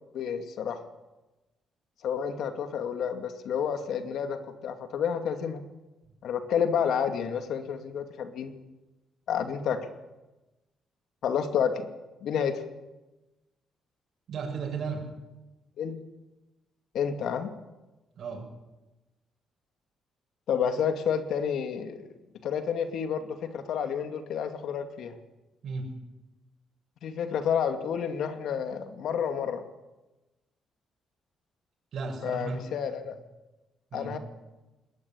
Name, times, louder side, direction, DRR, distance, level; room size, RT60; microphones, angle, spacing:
voice 1, 0.1-0.8 2.0-5.6 6.2-8.5 9.3-9.8 11.2-11.9 12.2-12.6 15.8-16.0 16.9-17.5 20.5-22.0 22.4-25.1 27.0-29.6 32.2-33.1 33.9-34.2, left 7 dB, 75° left, 7 dB, 2.5 m, -30 dB
voice 2, 14.3-15.0 18.2-18.5 25.6-25.9 31.9-32.6 33.9-34.1, right 4 dB, 65° right, 1 dB, 6.5 m, -34 dB
21.5 x 19.0 x 8.8 m, 1.1 s
cardioid pair, 90°, 0 cm